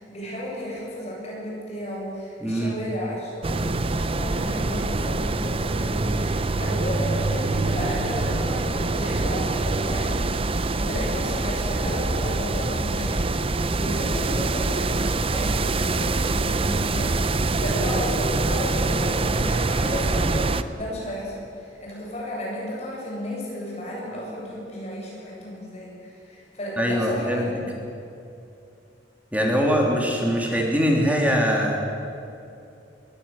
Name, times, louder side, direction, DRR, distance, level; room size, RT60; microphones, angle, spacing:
voice 1, 0.0-20.4 20.7-27.6, equal, 35° left, -4 dB, 8.0 m, -33 dB
voice 2, 2.4-2.7 26.8-27.5 29.3-31.8, equal, 10° right, -1 dB, 3.3 m, -22 dB
sound 1, 3.4-20.6, right 2 dB, 30° right, 0.7 m, -25 dB
21.5 x 16.5 x 9.1 m, 2.6 s
head